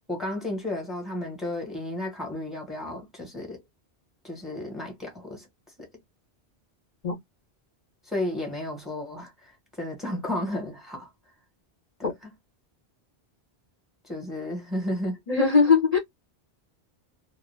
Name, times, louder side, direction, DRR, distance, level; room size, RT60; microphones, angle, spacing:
voice 1, 0.1-3.6 4.2-5.5 5.8-5.9 8.1-9.5 9.8-11.1 12.0-12.3 14.0-15.2, left 1 dB, ahead, 1.0 m, -33 dB
voice 2, 15.3-16.0, left 5 dB, 40° left, 0.8 m, -20 dB
2.4 x 2.1 x 3.2 m
omnidirectional pair, 1.1 m